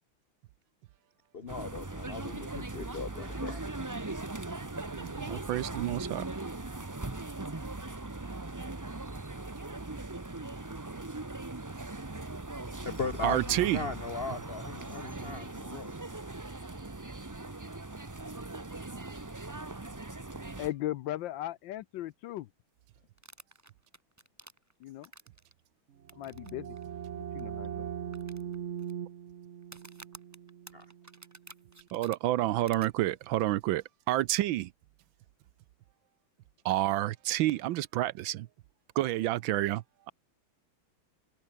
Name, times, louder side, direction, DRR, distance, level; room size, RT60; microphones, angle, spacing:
voice 1, 1.3-3.7 12.8-15.9 30.7-30.8, left 4 dB, 55° left, 0.6 m, -38 dB
sound 1, 1.5-20.7, right 2 dB, 25° right, 0.3 m, -40 dB
voice 2, 5.0-6.3 13.2-13.9 31.9-34.7 36.6-38.5 39.0-40.1, right 15 dB, 75° right, 1.3 m, -29 dB
voice 3, 20.6-22.5 24.8-25.1 26.1-26.8 27.2-27.9, left 14 dB, 70° left, 1.2 m, -37 dB
sound 2, 23.2-25.5 26.1-26.5 26.8-26.9 27.4-27.5 28.1-28.9 29.6-32.2 32.7-32.9, right 2 dB, 10° right, 1.1 m, -51 dB
sound 3, 26.0-31.6, right 9 dB, 55° right, 0.8 m, -41 dB
omnidirectional pair, 2.3 m